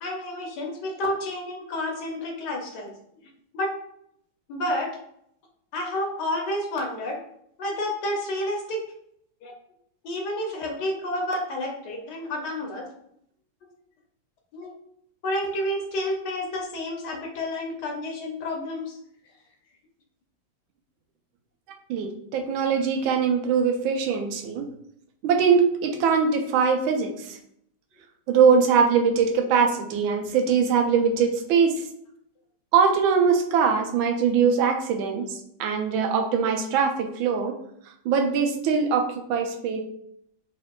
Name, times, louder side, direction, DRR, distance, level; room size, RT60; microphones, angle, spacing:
voice 1, 0.0-2.9 3.5-3.7 4.5-4.9 5.7-7.2 7.6-8.8 9.4-9.5 10.0-12.9 14.5-14.7 15.2-19.0, left 1 dB, 65° left, 1 dB, 1.2 m, -30 dB
voice 2, 21.9-24.7 25.2-27.4 28.3-31.8 32.7-35.3 35.6-37.6 38.0-39.8, right 6 dB, 85° right, 4 dB, 1.4 m, -22 dB
4.4 x 3.6 x 2.3 m, 0.71 s
omnidirectional pair, 2.2 m